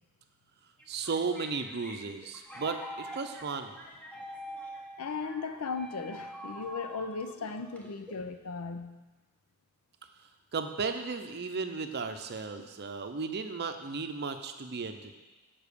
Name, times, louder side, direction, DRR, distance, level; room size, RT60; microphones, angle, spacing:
sound 1, 0.8-8.3, equal, 5° left, 0.9 m, -45 dB
voice 1, 0.9-3.7 10.5-15.2, right 4 dB, 50° right, 7 dB, 0.6 m, -35 dB
voice 2, 5.0-9.0 14.8-14.9, left 4 dB, 80° left, 9 dB, 0.6 m, -37 dB
7.1 x 5.4 x 6.7 m, 1.2 s
head